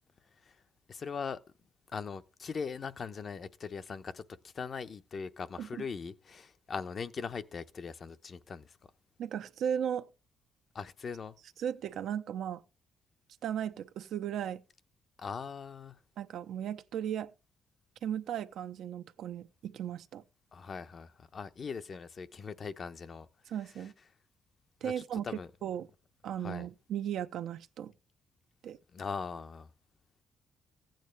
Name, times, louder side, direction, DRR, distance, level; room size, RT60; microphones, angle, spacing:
voice 1, 0.9-1.4 1.9-8.8 10.7-11.4 15.2-16.0 20.5-23.3 24.8-25.5 26.4-26.7 28.9-29.7, left 5 dB, 45° left, 0.9 m, -40 dB
voice 2, 9.2-10.1 11.6-12.6 13.4-14.6 16.2-17.3 18.0-20.2 23.5-23.9 24.8-25.3 25.6-25.9 26.2-27.9 28.6-28.8, right 9 dB, 75° right, 0.8 m, -36 dB
15.0 x 9.0 x 3.3 m
cardioid pair, 90°, 0 cm